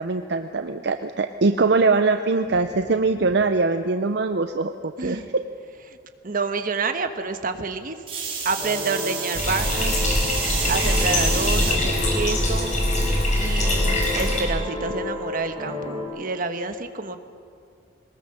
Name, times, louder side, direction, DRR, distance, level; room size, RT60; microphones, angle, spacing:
voice 1, 0.0-5.2, right 3 dB, 65° right, 8 dB, 0.6 m, -22 dB
voice 2, 5.0-5.3 5.9-6.0 6.2-8.0 8.4-10.1 10.7-12.7 13.3-17.2, right 4 dB, 50° right, 8 dB, 1.2 m, -28 dB
sound 1, 8.1-11.8 12.4-12.9 14.2-14.3, right 5 dB, 30° right, 4.5 m, -29 dB
sound 2, 8.6-16.0, left 2 dB, 20° left, 6.8 m, -32 dB
Bathtub (filling or washing), 9.3-14.4, left 1 dB, 40° left, 4.9 m, -23 dB
22.0 x 19.5 x 6.7 m, 2.3 s
head